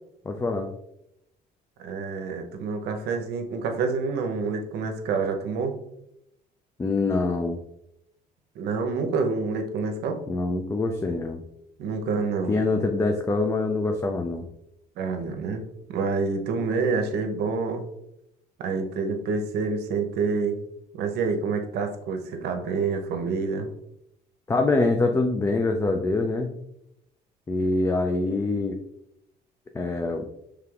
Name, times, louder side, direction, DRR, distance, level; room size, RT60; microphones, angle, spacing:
voice 1, 0.3-0.7 6.8-7.6 10.3-11.4 12.5-14.5 24.5-26.5 27.5-28.8 29.7-30.3, left 3 dB, 15° left, 4 dB, 0.4 m, -24 dB
voice 2, 1.8-5.8 8.6-10.2 11.8-12.6 15.0-15.6 15.9-17.9 18.6-20.6 20.9-23.7, right 4 dB, 75° right, 5 dB, 0.7 m, -27 dB
5.1 x 3.4 x 2.3 m, 0.80 s
cardioid pair, 110°, 17 cm